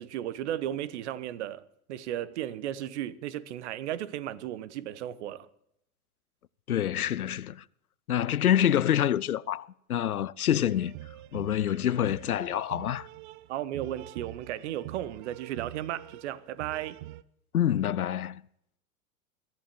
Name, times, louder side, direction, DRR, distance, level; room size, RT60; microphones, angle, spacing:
voice 1, 0.0-1.6 1.9-5.5 13.5-17.0, right 12 dB, 50° right, 0.9 m, -35 dB
voice 2, 6.7-7.6 8.1-10.9 11.3-13.1 17.5-18.4, left 10 dB, 85° left, 0.5 m, -27 dB
sound 1, 10.6-17.2, right 15 dB, 35° right, 0.4 m, -45 dB
22.0 x 13.5 x 3.0 m
figure-of-eight pair, 90°, 43 cm